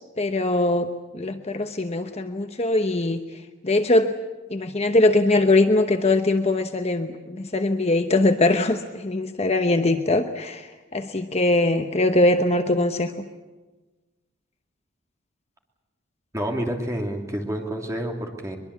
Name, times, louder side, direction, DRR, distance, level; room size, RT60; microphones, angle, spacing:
voice 1, 0.2-0.9 1.1-3.2 3.6-4.1 4.5-10.7 10.9-13.1, left 2 dB, 30° left, 7 dB, 1.0 m, -21 dB
voice 2, 16.3-18.6, equal, 15° right, 1 dB, 2.9 m, -28 dB
22.5 x 22.5 x 8.2 m, 1.2 s
head